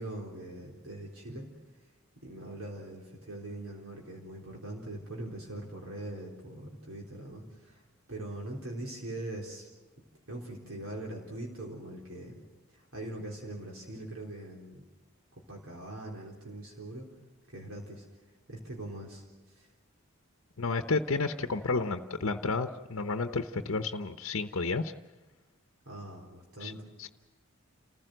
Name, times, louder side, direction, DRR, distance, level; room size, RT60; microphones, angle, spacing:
voice 1, 0.0-1.5 2.2-7.8 8.1-9.7 10.3-12.4 12.7-14.8 15.5-17.1 17.5-18.0 18.5-19.2 19.6-19.7 25.9-26.8, right 1 dB, 75° right, -1 dB, 3.8 m, -42 dB
voice 2, 20.6-24.9 26.6-26.7 27.0-27.1, left 3 dB, 70° left, 7 dB, 0.8 m, -31 dB
29.0 x 15.5 x 7.9 m, 1.2 s
head